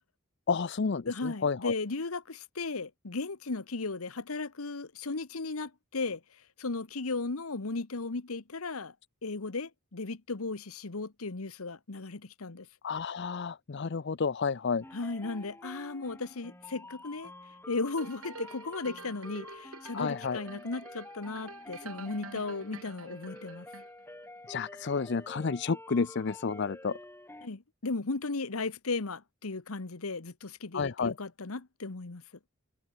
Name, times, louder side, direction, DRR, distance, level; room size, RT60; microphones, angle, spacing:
voice 1, 0.5-1.7 12.8-14.8 19.9-20.4 24.5-27.0 30.7-31.1, left 5 dB, 55° left, 0.5 m, -31 dB
voice 2, 1.1-6.2 6.6-8.9 9.2-12.7 14.9-17.3 17.7-23.7 27.4-32.2, left 3 dB, 85° left, 1.2 m, -36 dB
sound 1, 14.8-27.5, left 2 dB, 10° left, 2.0 m, -48 dB
sound 2, 18.0-24.2 24.7-24.8, right 4 dB, 80° right, 4.0 m, -48 dB
head